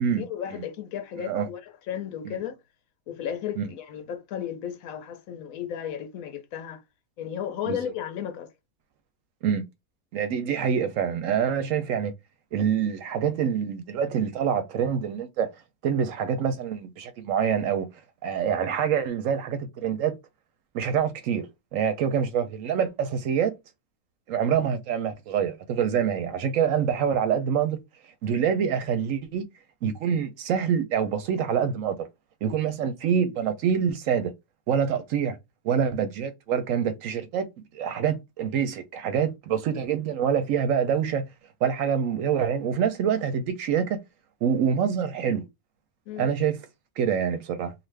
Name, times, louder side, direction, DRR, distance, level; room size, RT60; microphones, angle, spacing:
voice 1, 0.0-2.6 3.1-6.8 7.2-8.5 46.1-46.3, left 9 dB, 70° left, 1.0 m, -34 dB
voice 2, 10.1-12.1 12.5-15.5 15.8-17.9 18.2-20.2 20.7-21.5 21.7-23.6 24.3-27.8 28.2-29.5 29.8-32.0 32.4-34.3 34.7-35.4 35.6-37.5 37.7-41.2 41.6-44.0 44.4-45.4 46.2-46.6 47.0-47.7, right 7 dB, 70° right, 0.9 m, -26 dB
2.6 x 2.5 x 3.1 m
omnidirectional pair, 1.5 m